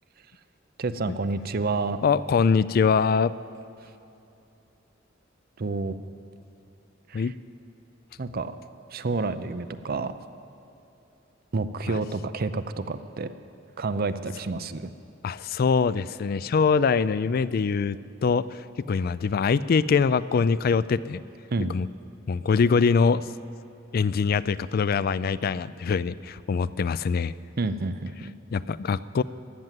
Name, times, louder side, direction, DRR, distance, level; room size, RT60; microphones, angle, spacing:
voice 1, 0.8-2.0 5.6-5.9 7.1-7.2 8.2-8.5 8.9-10.1 11.5-13.3 13.8-14.9 21.5-21.8 27.6-28.3, right 3 dB, 50° right, 11 dB, 0.6 m, -29 dB
voice 2, 2.0-3.3 7.1-7.3 11.9-12.0 15.2-21.2 21.7-21.9 22.3-23.3 23.9-27.3 28.5-29.2, left 5 dB, 50° left, 17 dB, 0.3 m, -23 dB
15.5 x 10.5 x 7.5 m, 2.8 s
head